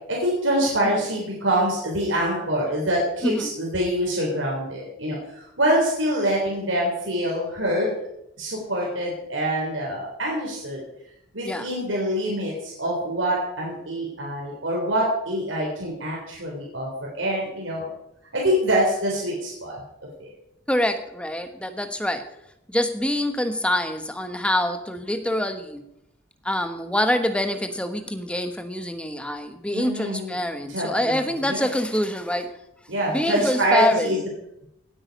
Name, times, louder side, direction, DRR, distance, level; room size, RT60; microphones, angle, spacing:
voice 1, 0.1-8.1 8.4-10.8 11.3-17.9 18.3-19.8 20.2-20.3 29.7-30.4 30.7-31.7 32.9-34.3, right 1 dB, 85° right, -3 dB, 3.7 m, -25 dB
voice 2, 20.7-22.2 22.7-25.8 26.4-32.5 33.1-34.1, left 1 dB, 5° left, 8 dB, 1.1 m, -25 dB
17.5 x 8.9 x 5.2 m, 0.81 s
head